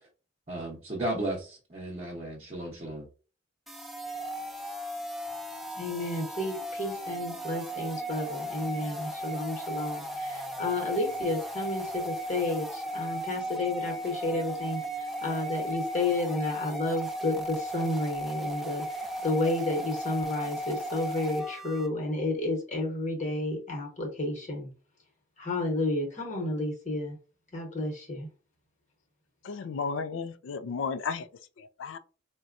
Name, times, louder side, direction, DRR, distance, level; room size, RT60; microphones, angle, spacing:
voice 1, 0.5-3.1, right 1 dB, 35° right, 0.7 m, -34 dB
sound 1, 3.7-21.9, right 1 dB, ahead, 0.5 m, -36 dB
voice 2, 5.7-18.8 19.2-24.7 25.4-27.2 27.5-28.3, left 2 dB, 40° left, 1.1 m, -31 dB
voice 3, 29.4-31.3 31.6-32.0, left 5 dB, 85° left, 0.4 m, -33 dB
4.0 x 2.2 x 2.5 m
head